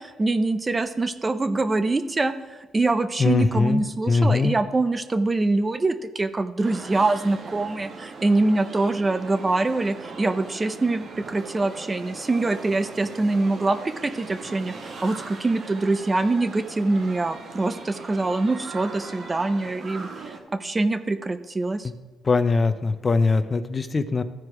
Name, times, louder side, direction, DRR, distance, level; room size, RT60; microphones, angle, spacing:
voice 1, 0.0-2.3 2.7-21.9, right 2 dB, 25° right, 11 dB, 0.6 m, -24 dB
voice 2, 3.2-3.8 4.1-4.5 21.8-21.9 22.2-24.2, left 4 dB, 30° left, 11 dB, 0.6 m, -21 dB
sound 1, 6.6-20.4, right 4 dB, 55° right, 1.2 m, -40 dB
14.0 x 4.7 x 4.8 m, 1.2 s
cardioid pair, 90°, 0 cm